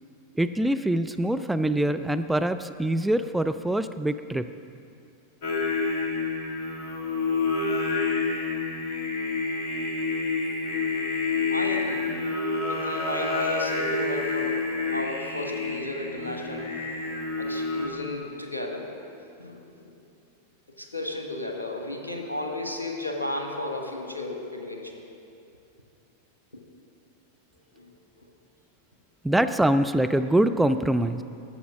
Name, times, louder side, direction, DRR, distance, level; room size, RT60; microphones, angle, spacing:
voice 1, 0.4-4.5 29.2-31.2, right 1 dB, 5° right, 9 dB, 0.3 m, -24 dB
Singing, 5.4-17.9, left 3 dB, 45° left, 1.8 m, -28 dB
voice 2, 11.5-12.1 12.7-19.0 19.4-20.0 20.7-25.0 27.7-27.9 28.2-28.3, left 2 dB, 85° left, 2 dB, 1.2 m, -34 dB
12.0 x 7.0 x 6.1 m, 2.5 s
figure-of-eight pair, 90°, 0 cm